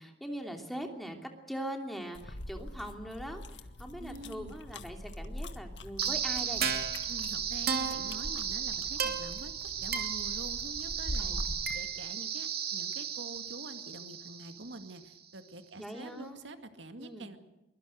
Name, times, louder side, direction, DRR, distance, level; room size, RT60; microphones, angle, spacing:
voice 1, 0.0-3.4 3.8-6.6 11.2-11.5 15.8-16.4 17.0-17.3, equal, ahead, 3 dB, 2.9 m, -41 dB
sound 1, 2.1-11.8, left 1 dB, 70° left, 1.7 m, -43 dB
voice 2, 4.0-4.6 7.1-11.4 11.7-17.4, right 1 dB, 80° right, 7 dB, 2.1 m, -46 dB
sound 2, 6.0-15.0, right 7 dB, 55° right, 2.8 m, -34 dB
23.5 x 22.5 x 6.5 m, 0.98 s
head